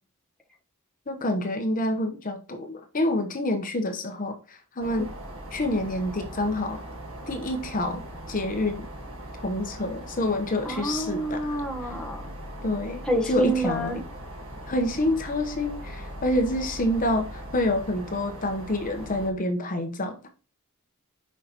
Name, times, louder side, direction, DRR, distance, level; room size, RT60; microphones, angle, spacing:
voice 1, 1.1-5.1 5.5-6.8 7.3-8.0 8.3-8.9 9.4-11.6 12.6-13.9 14.7-20.3, left 1 dB, 40° left, 6 dB, 0.9 m, -27 dB
sound 1, 4.8-19.3, equal, 70° right, 1.5 m, -40 dB
voice 2, 10.6-12.3 13.0-14.0, right 1 dB, 5° left, -1 dB, 1.0 m, -28 dB
6.3 x 5.2 x 2.9 m, 0.36 s
head